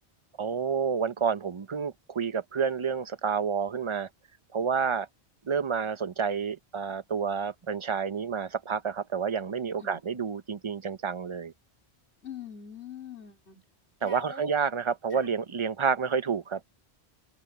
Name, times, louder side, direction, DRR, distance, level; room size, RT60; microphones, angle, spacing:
voice 1, 0.4-4.1 4.5-5.1 5.5-11.5 14.0-16.6, right 6 dB, 35° right, 0.6 m, -29 dB
voice 2, 12.2-13.6 14.0-14.5 15.1-15.2, left 4 dB, 85° left, 4.4 m, -42 dB
omnidirectional pair, 1.1 m